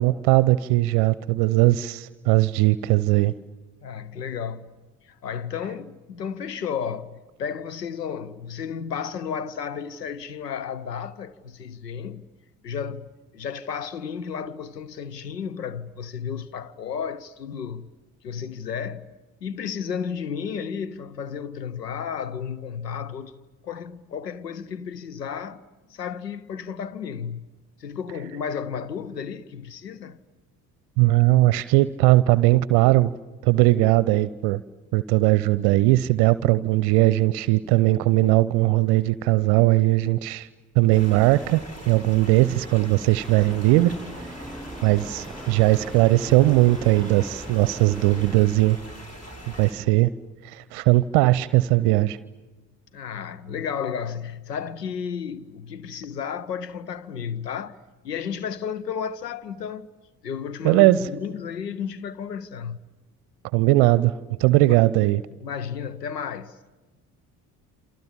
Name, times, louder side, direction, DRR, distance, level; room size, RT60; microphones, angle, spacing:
voice 1, 0.0-3.3 31.0-33.1 33.4-34.6 34.9-40.5 40.8-43.9 44.8-48.8 49.6-50.1 50.4-52.2 60.6-61.1 63.5-64.1 64.4-65.2, right 18 dB, 55° right, 0.8 m, -19 dB
voice 2, 3.8-4.7 5.0-12.3 12.6-17.9 18.2-19.1 19.4-23.3 23.6-25.6 25.9-27.5 27.8-30.2 52.9-57.8 58.0-59.9 60.2-62.8 65.4-66.7, left 7 dB, 85° left, 0.9 m, -33 dB
sound 1, 40.9-49.7, equal, 30° left, 7.6 m, -41 dB
sound 2, 43.2-48.3, right 1 dB, ahead, 7.2 m, -40 dB
28.0 x 27.0 x 7.3 m
figure-of-eight pair, 50°, 48 cm